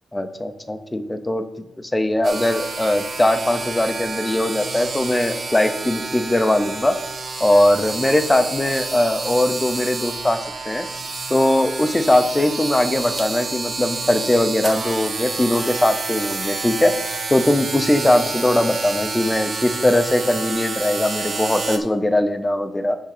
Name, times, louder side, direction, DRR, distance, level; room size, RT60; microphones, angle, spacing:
voice 1, 0.1-1.5 1.8-7.0 7.4-10.4 10.7-10.9 11.3-16.9 17.3-23.0, left 1 dB, 10° left, 9 dB, 0.6 m, -20 dB
sound 1, 2.2-21.8, right 3 dB, 35° right, 1.1 m, -29 dB
10.0 x 3.7 x 6.6 m, 0.89 s
wide cardioid pair, 170°, 0 cm